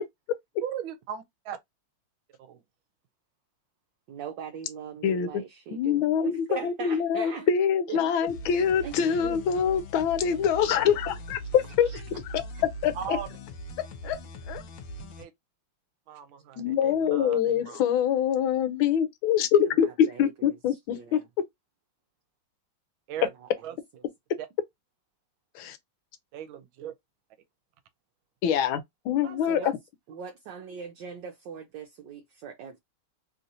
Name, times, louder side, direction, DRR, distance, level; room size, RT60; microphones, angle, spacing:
voice 1, 0.6-1.6 2.4-2.6 7.9-8.0 12.9-13.3 15.2-15.3 16.1-17.8 23.1-23.3 23.6-23.8 24.4-24.5 26.3-26.9 29.2-29.7, right 9 dB, 90° right, 1.4 m, -37 dB
voice 2, 4.1-7.5 8.0-8.2 8.8-9.5 11.9-12.0 12.5-12.6 20.1-20.5 20.9-21.3 29.5-29.7 30.1-32.8, right 6 dB, 70° right, 1.2 m, -40 dB
voice 3, 5.0-5.4 5.7-11.9 12.2-12.4 12.8-13.2 14.0-14.2 14.5-14.6 16.6-21.2 25.5-25.8 28.4-29.8, left 8 dB, 90° left, 1.5 m, -25 dB
sound 1, 8.3-15.2, equal, 70° left, 1.3 m, -41 dB
3.5 x 2.7 x 2.5 m
omnidirectional pair, 2.2 m